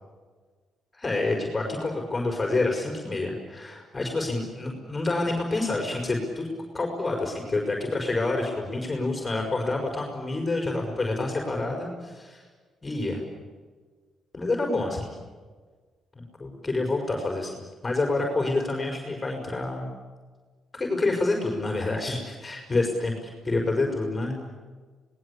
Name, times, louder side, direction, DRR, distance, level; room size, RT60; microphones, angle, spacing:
voice 1, 0.9-6.5 6.7-12.4 12.8-13.2 14.3-15.1 16.1-19.9 20.7-24.4, left 2 dB, 25° left, 1 dB, 5.2 m, -28 dB
25.5 x 20.0 x 8.5 m, 1.4 s
cardioid pair, 90°, 0 cm